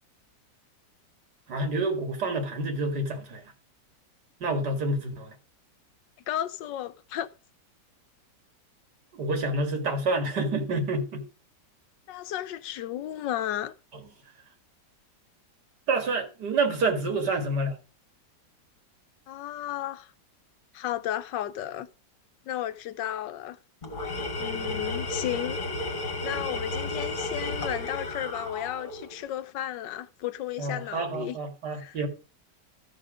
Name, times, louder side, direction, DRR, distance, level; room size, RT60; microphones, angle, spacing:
voice 1, 1.5-3.4 4.4-5.3 9.1-11.2 15.9-17.8 30.6-32.1, right 2 dB, 70° right, 2.5 m, -28 dB
voice 2, 6.3-7.3 12.1-13.7 19.3-20.1 20.7-21.9 22.5-23.6 24.4-25.6 26.2-31.4 31.7-32.0, left 12 dB, 85° left, 1.4 m, -33 dB
Tools, 23.8-29.2, left 2 dB, 30° left, 1.6 m, -33 dB
13.5 x 6.5 x 5.0 m
omnidirectional pair, 1.9 m